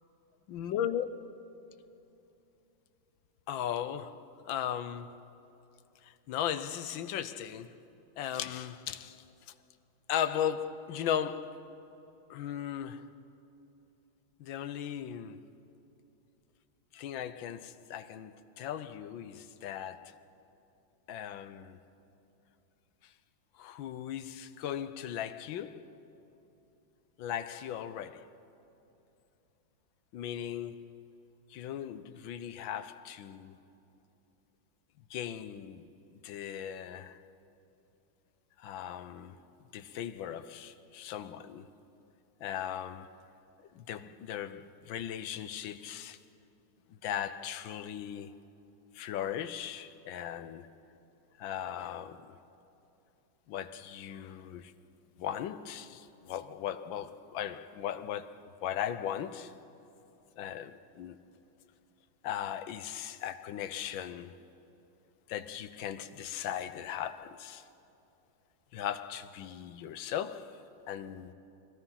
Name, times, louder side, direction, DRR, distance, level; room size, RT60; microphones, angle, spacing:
voice 1, 0.5-1.1 3.5-5.2 6.0-7.7 8.2-9.5 10.1-11.7 12.3-13.1 14.4-15.4 16.9-20.2 21.1-21.8 23.0-23.1 23.5-25.9 27.2-28.3 30.1-30.9 31.5-33.6 35.1-37.2 38.6-39.4 39.7-41.7 42.4-43.2 43.7-46.2 46.9-48.4 48.9-50.7 51.4-52.4 53.5-54.7 55.2-59.5 60.4-61.2 62.2-64.4 65.3-67.7 68.7-71.3, left 10 dB, 75° left, 1.5 m, -38 dB
29.0 x 21.5 x 5.7 m
omnidirectional pair, 2.1 m